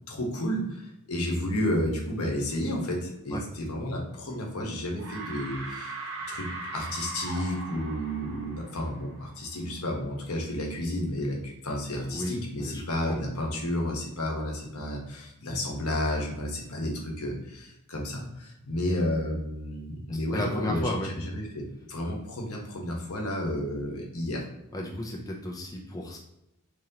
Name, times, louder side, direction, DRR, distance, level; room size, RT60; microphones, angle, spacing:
voice 1, 0.1-6.0 6.3-24.4, left 1 dB, 80° left, 0 dB, 1.0 m, -31 dB
sound 1, 4.3-4.7 5.0-9.6, right 3 dB, 60° right, 0.8 m, -40 dB
voice 2, 12.1-12.8 13.1-13.2 20.1-21.1 24.7-26.2, left 1 dB, 15° left, -1 dB, 0.4 m, -33 dB
3.7 x 3.0 x 2.8 m, 0.87 s
head